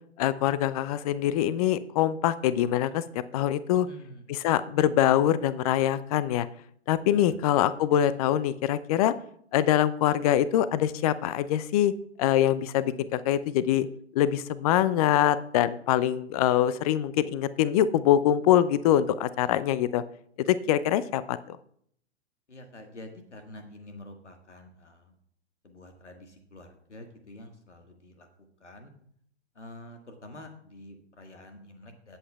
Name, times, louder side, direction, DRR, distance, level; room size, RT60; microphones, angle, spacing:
voice 1, 0.2-3.9 4.3-6.5 6.9-9.1 9.5-11.9 12.2-13.9 14.1-20.0 20.5-21.6, left 11 dB, 35° left, 16 dB, 0.5 m, -24 dB
voice 2, 3.7-4.3 7.1-7.4 22.5-25.1 25.6-28.3 28.6-28.9 29.5-32.2, left 1 dB, 85° left, 5 dB, 1.7 m, -47 dB
17.5 x 7.9 x 2.3 m, 0.66 s
figure-of-eight pair, 105°, 35 cm